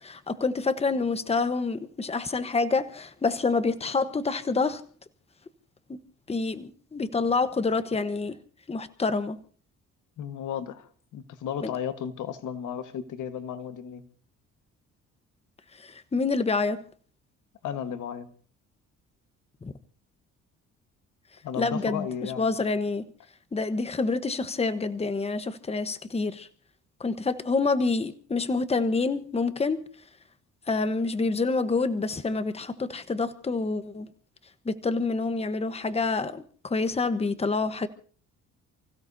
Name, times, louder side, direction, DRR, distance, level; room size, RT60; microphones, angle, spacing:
voice 1, 0.0-4.8 5.9-6.0 6.3-8.4 8.7-9.4 11.6-11.7 15.8-16.8 19.6-19.7 21.6-23.1 23.5-26.5 27.0-29.8 30.7-34.1 34.6-37.9, left 3 dB, 20° left, 1.1 m, -27 dB
voice 2, 10.2-14.0 17.6-18.3 21.4-22.5, left 8 dB, 80° left, 1.5 m, -34 dB
29.5 x 16.0 x 2.7 m
cardioid pair, 90°, 30 cm